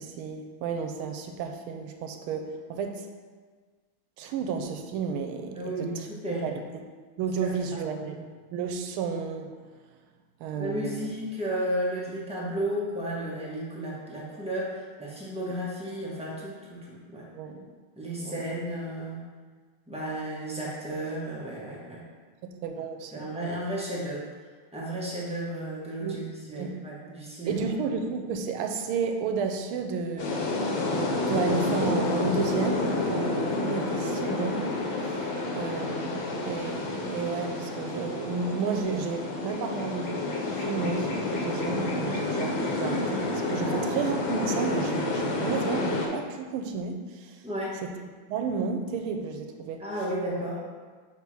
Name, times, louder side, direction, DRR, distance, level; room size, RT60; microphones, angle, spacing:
voice 1, 0.0-3.1 4.2-6.1 6.4-6.5 7.2-8.2 8.5-9.5 10.4-11.1 17.3-17.7 18.2-18.5 22.4-23.3 26.0-26.2 26.6-26.7 27.5-30.4 31.3-34.7 35.0-35.2 35.5-47.4 47.8-48.0 48.3-49.9, right 5 dB, 85° right, 5 dB, 1.5 m, -32 dB
voice 2, 5.5-6.5 7.4-7.5 8.1-8.2 10.6-17.3 18.0-19.2 19.9-22.0 23.1-24.3 24.7-27.6 43.6-43.9 47.4-47.8 49.8-50.6, right 1 dB, 5° right, -6 dB, 0.6 m, -33 dB
sound 1, 30.2-46.1, left 2 dB, 70° left, 1.5 m, -29 dB
5.9 x 3.5 x 4.6 m, 1.5 s
omnidirectional pair, 2.3 m